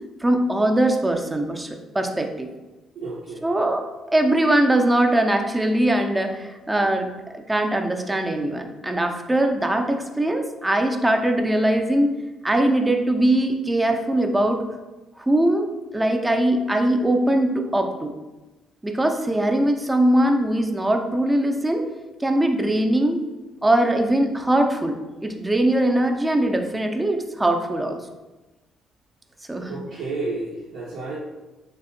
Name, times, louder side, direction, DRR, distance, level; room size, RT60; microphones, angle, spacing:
voice 1, 0.2-2.5 3.4-12.1 12.4-14.6 15.2-15.7 15.9-18.1 18.8-21.9 22.2-23.2 23.6-28.0 29.5-29.8, right 1 dB, 15° right, 4 dB, 0.4 m, -21 dB
voice 2, 3.0-3.5 29.7-31.2, right 3 dB, 75° right, -5 dB, 0.5 m, -31 dB
3.2 x 2.7 x 2.5 m, 1.1 s
supercardioid pair, 75°, 0 cm